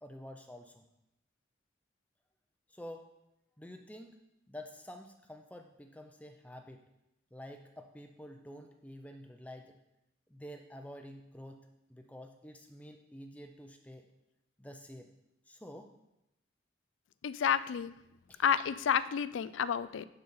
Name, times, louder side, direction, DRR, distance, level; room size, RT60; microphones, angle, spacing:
voice 1, 0.0-0.9 2.7-3.1 3.6-4.2 4.5-6.8 7.3-9.8 10.3-11.6 11.9-14.1 14.6-15.1 15.5-15.9 18.3-18.4, equal, 5° left, 5 dB, 0.5 m, -49 dB
voice 2, 17.2-17.9 18.4-20.1, left 8 dB, 80° left, 16 dB, 0.4 m, -30 dB
10.5 x 4.0 x 5.5 m, 0.87 s
head